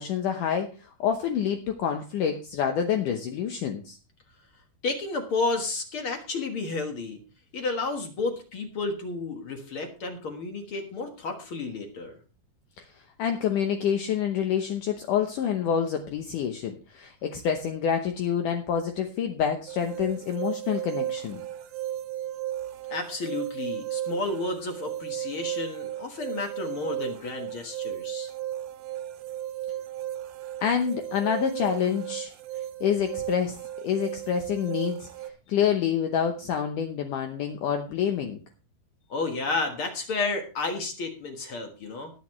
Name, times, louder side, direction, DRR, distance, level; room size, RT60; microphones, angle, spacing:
voice 1, 0.0-4.0 12.8-12.9 13.2-21.4 30.6-32.3 32.8-33.6 33.8-35.1 35.5-38.4, left 8 dB, 70° left, 5 dB, 2.2 m, -27 dB
voice 2, 4.8-7.2 7.5-12.2 22.9-28.3 39.1-42.1, left 3 dB, 50° left, 5 dB, 1.6 m, -31 dB
sound 1, 19.7-35.3, right 12 dB, 80° right, 2.6 m, -35 dB
18.5 x 8.5 x 3.1 m, 0.33 s
omnidirectional pair, 4.4 m